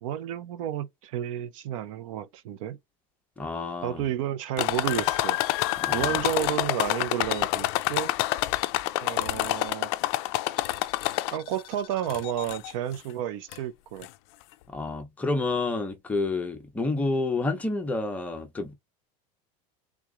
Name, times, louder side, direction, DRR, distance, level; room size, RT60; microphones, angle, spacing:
voice 1, 0.0-2.8 3.8-5.4 5.9-8.5 9.0-9.9 11.3-14.1, right 11 dB, 70° right, 0.7 m, -31 dB
voice 2, 3.4-4.1 5.8-6.2 14.7-18.7, left 3 dB, 10° left, 0.7 m, -29 dB
sound 1, 4.6-11.6 12.1-12.7 13.5-13.6 14.0-14.1, left 17 dB, 50° left, 0.4 m, -27 dB
3.5 x 3.1 x 3.6 m
supercardioid pair, 175°, 18 cm